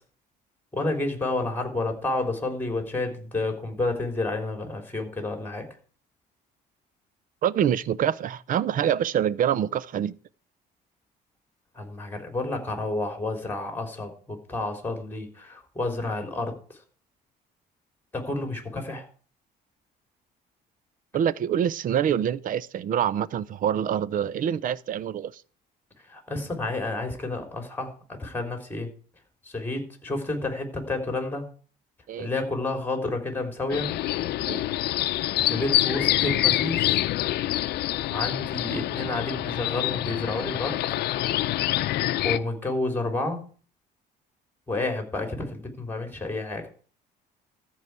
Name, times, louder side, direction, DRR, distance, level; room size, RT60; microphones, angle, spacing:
voice 1, 0.7-5.7 11.8-16.5 18.1-19.0 26.1-27.9 28.2-28.9 29.5-31.4 32.2-33.9 35.5-37.0 38.1-40.8 42.2-43.5 44.7-46.7, left 2 dB, 10° left, 3.7 m, -30 dB
voice 2, 7.4-10.1 21.1-25.4 32.1-32.3 34.5-34.7, right 9 dB, 55° right, 0.6 m, -25 dB
sound 1, 33.7-42.4, left 15 dB, 75° left, 0.6 m, -26 dB
14.0 x 4.8 x 8.2 m
cardioid pair, 110°, 17 cm